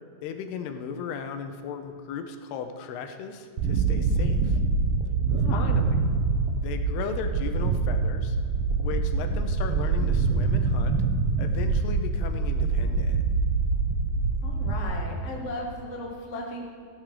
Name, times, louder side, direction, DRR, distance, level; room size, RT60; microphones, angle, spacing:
voice 1, 0.2-4.6 5.5-6.1 6.6-8.4 8.8-11.0 11.4-13.2, left 7 dB, 75° left, 7 dB, 2.7 m, -36 dB
sound 1, 3.6-14.8, right 4 dB, 70° right, 2.5 m, -25 dB
voice 2, 5.3-5.7 14.4-16.6, left 1 dB, 60° left, -2 dB, 0.7 m, -36 dB
15.0 x 11.0 x 5.0 m, 2.2 s
omnidirectional pair, 5.0 m